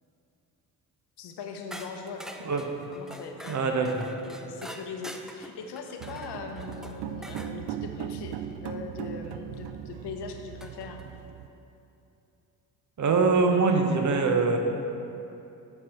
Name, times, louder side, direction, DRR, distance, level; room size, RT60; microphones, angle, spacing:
voice 1, 1.2-2.3 2.9-3.7 4.2-11.0, left 5 dB, 55° left, 4 dB, 1.0 m, -40 dB
sound 1, 1.7-7.6 9.5-9.6 10.6-11.1, equal, ahead, 0.4 m, -45 dB
voice 2, 2.4-2.9 3.5-4.1 13.0-14.6, right 4 dB, 35° right, 4 dB, 1.1 m, -24 dB
sound 2, 6.0-11.5, right 10 dB, 55° right, 0.6 m, -38 dB
7.7 x 6.3 x 4.4 m, 2.8 s
hypercardioid pair, 45°, 48 cm